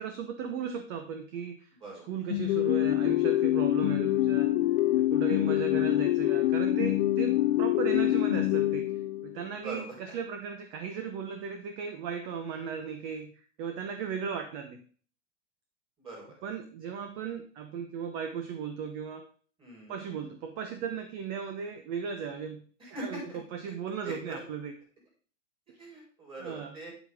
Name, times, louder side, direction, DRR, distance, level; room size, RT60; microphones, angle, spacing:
voice 1, 0.0-1.7 2.1-4.5 4.9-8.9 9.2-13.3 13.6-14.8 16.4-19.2 19.9-24.7 25.7-25.8 26.4-26.7, right 7 dB, 30° right, 7 dB, 0.9 m, -36 dB
sound 1, 2.3-9.5, left 15 dB, 50° left, 0.4 m, -26 dB
voice 2, 5.2-5.5 9.6-10.2 16.0-16.3 19.6-19.9 22.8-23.4 23.9-24.4 25.8-26.9, right 2 dB, 15° right, -2 dB, 4.7 m, -42 dB
9.6 x 8.3 x 3.6 m, 0.43 s
supercardioid pair, 165°, 37 cm